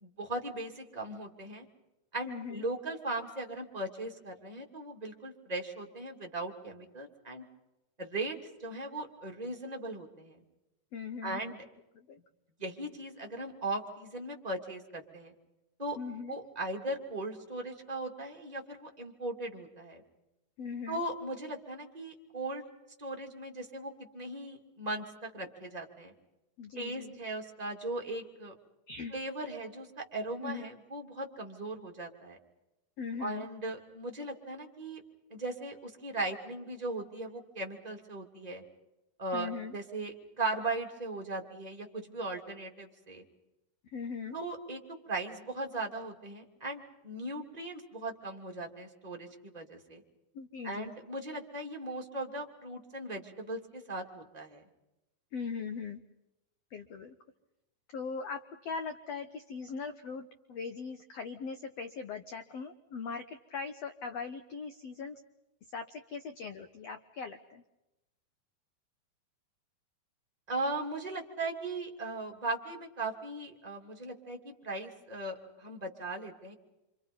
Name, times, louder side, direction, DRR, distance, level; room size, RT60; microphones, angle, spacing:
voice 1, 0.0-1.7 2.1-7.4 8.0-10.4 11.2-11.6 12.6-15.3 15.8-16.0 16.3-20.0 20.9-22.7 23.0-26.1 26.8-28.5 29.1-32.4 33.2-35.0 35.3-38.6 39.2-43.2 44.3-44.8 45.1-50.0 50.6-54.6 70.5-76.5, right 2 dB, 10° right, 1 dB, 2.5 m, -38 dB
voice 2, 2.3-2.6 10.9-11.5 11.9-12.2 16.0-16.3 20.6-21.0 26.6-27.2 28.9-29.1 30.4-30.7 33.0-33.5 39.3-39.8 43.8-44.4 50.3-50.9 55.3-56.0 56.7-57.1 57.9-65.2 65.7-67.6, left 5 dB, 75° left, 8 dB, 1.5 m, -40 dB
28.0 x 26.0 x 5.5 m, 0.95 s
omnidirectional pair, 4.2 m